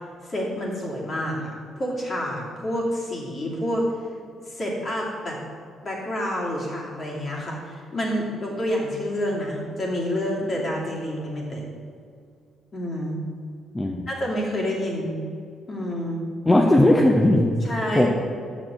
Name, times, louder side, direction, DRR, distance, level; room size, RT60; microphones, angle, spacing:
voice 1, 0.2-1.5 1.8-3.8 4.5-5.4 5.8-11.6 12.7-13.2 14.1-15.1 15.7-16.2 17.6-18.1, equal, 40° left, -3 dB, 2.6 m, -28 dB
voice 2, 13.7-14.1 16.5-17.6 17.9-18.1, left 1 dB, 15° left, 1 dB, 0.7 m, -17 dB
6.6 x 6.3 x 7.6 m, 2.2 s
cardioid pair, 90°, 0 cm